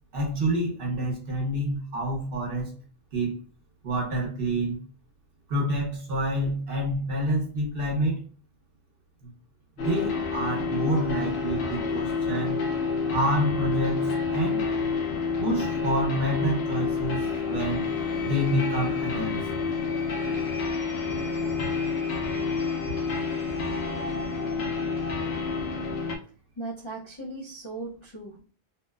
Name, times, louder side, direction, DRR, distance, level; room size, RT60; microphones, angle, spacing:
voice 1, 0.1-2.7 3.1-3.4 3.8-4.8 5.5-8.3 9.2-9.3 9.8-12.6 13.0-14.6 15.4-17.9 18.2-19.4 22.9-23.0 23.6-23.7, right 1 dB, 60° right, -1 dB, 1.0 m, -28 dB
sound 1, 9.8-26.2, left 5 dB, 75° left, 0.8 m, -29 dB
voice 2, 26.6-28.4, right 2 dB, 45° left, -4 dB, 0.4 m, -37 dB
2.8 x 2.0 x 2.2 m, 0.39 s
omnidirectional pair, 1.1 m